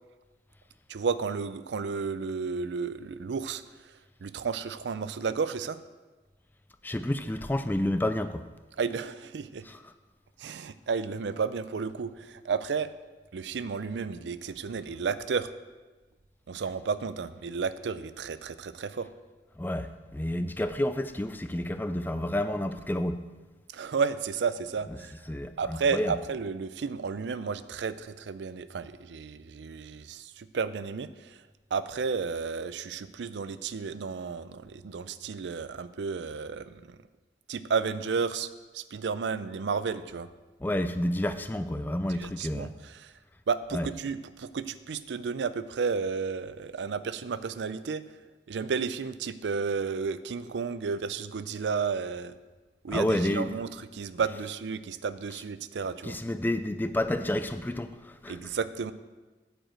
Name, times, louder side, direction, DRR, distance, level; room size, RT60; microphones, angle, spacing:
voice 1, 0.9-3.6 4.2-5.8 8.8-9.6 10.4-12.9 13.3-15.5 16.5-19.1 23.7-25.1 25.6-31.4 31.7-37.0 37.5-38.5 38.7-40.3 42.1-43.1 43.5-48.0 48.5-52.3 52.8-56.2 58.3-58.9, right 5 dB, 85° right, 14 dB, 0.4 m, -32 dB
voice 2, 6.8-8.5 9.7-9.9 19.6-23.2 25.3-26.1 40.6-42.7 43.7-43.9 52.9-53.5 56.0-58.4, left 1 dB, 10° left, 10 dB, 0.3 m, -30 dB
8.9 x 5.0 x 7.5 m, 1.2 s
head